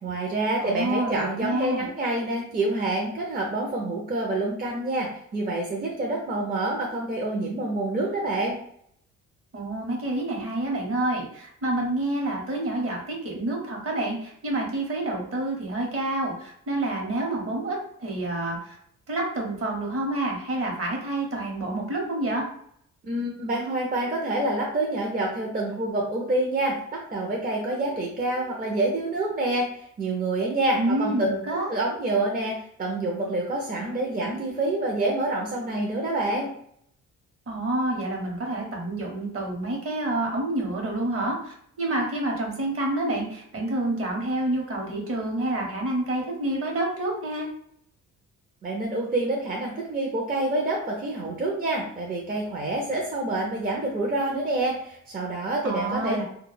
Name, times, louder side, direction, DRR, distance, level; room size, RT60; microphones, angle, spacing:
voice 1, 0.0-8.6 23.0-29.7 30.0-31.3 31.7-36.5 48.6-56.2, right 2 dB, 30° right, -1 dB, 0.5 m, -27 dB
voice 2, 0.6-1.9 9.5-18.8 19.1-22.4 30.8-31.7 37.5-47.5 55.6-56.2, right 1 dB, 50° right, 0 dB, 0.9 m, -28 dB
2.2 x 2.0 x 3.1 m, 0.68 s
cardioid pair, 90°, 30 cm